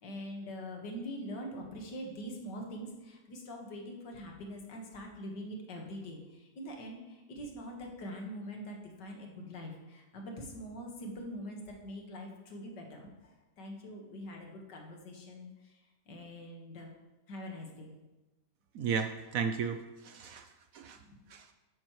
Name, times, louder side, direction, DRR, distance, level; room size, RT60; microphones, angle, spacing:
voice 1, 0.0-16.9 17.3-17.9 21.0-21.2, equal, 80° left, 1 dB, 2.1 m, -44 dB
voice 2, 18.7-21.0 21.3-21.5, right 6 dB, 70° right, 7 dB, 0.9 m, -35 dB
10.5 x 8.9 x 3.1 m, 1.1 s
omnidirectional pair, 1.8 m